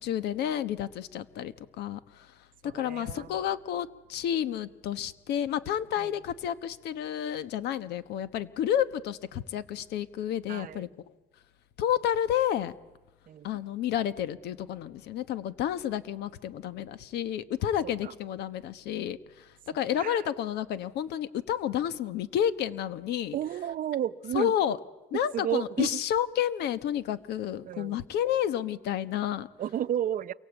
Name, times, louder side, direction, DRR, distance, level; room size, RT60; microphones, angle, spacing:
voice 1, 0.0-2.3 2.6-10.9 11.8-12.7 13.4-23.4 24.3-24.8 25.1-29.5, left 10 dB, 80° left, 1.2 m, -30 dB
voice 2, 2.6-3.3 6.0-6.1 10.5-10.9 13.3-13.5 18.0-18.1 20.0-20.2 23.3-24.5 25.3-25.9 27.6-28.0 29.6-30.3, right 10 dB, 55° right, 0.8 m, -32 dB
28.0 x 23.0 x 8.2 m
cardioid pair, 110°, 17 cm